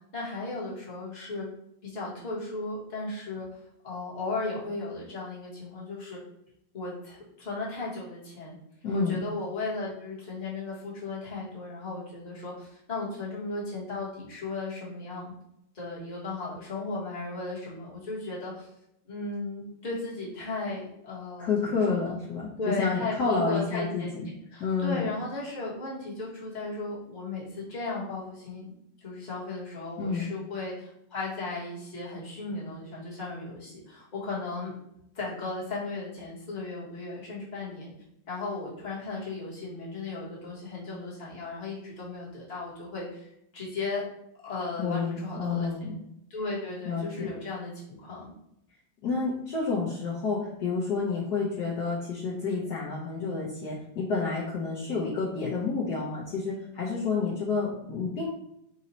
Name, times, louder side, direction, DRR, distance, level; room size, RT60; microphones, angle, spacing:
voice 1, 0.1-1.5 1.8-3.5 3.8-6.2 6.7-8.5 8.9-15.3 15.7-18.7 19.1-22.2 22.6-24.2 24.5-28.7 29.0-34.7 35.1-37.9 38.3-44.0 44.4-45.7 46.3-48.3, left 3 dB, 25° left, -7 dB, 1.4 m, -36 dB
voice 2, 8.8-9.2 21.4-22.5 22.8-24.3 24.6-25.0 30.0-30.3 44.8-46.0 46.8-47.3 49.0-58.3, left 4 dB, 65° left, -5 dB, 1.2 m, -29 dB
4.0 x 2.6 x 4.2 m, 0.79 s
omnidirectional pair, 2.1 m